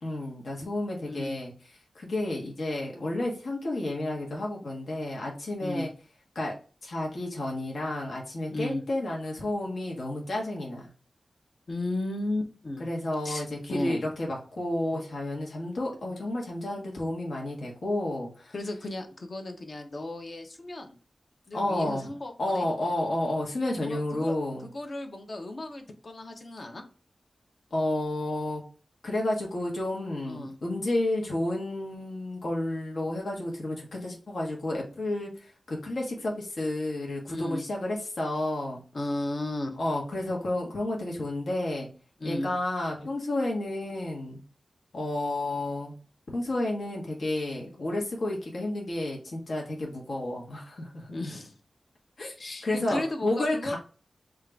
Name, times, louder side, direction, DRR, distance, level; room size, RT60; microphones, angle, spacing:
voice 1, 0.0-1.5 1.9-5.9 6.3-6.5 6.8-10.9 12.8-18.5 21.5-22.1 22.4-24.7 27.7-28.6 29.0-38.8 39.8-41.9 42.2-44.4 44.9-45.9 46.3-51.2 52.2-52.3 52.6-53.8, left 1 dB, 70° left, -1 dB, 1.3 m, -31 dB
voice 2, 1.1-1.4 5.6-5.9 8.5-8.8 11.7-12.9 13.2-14.0 18.5-20.9 21.5-22.7 23.7-26.8 30.2-30.5 37.3-37.6 38.9-39.8 42.2-42.5 51.1-51.5 52.4-53.8, left 2 dB, 50° left, 4 dB, 0.9 m, -34 dB
3.7 x 2.5 x 4.5 m, 0.37 s
wide cardioid pair, 115°, 0 cm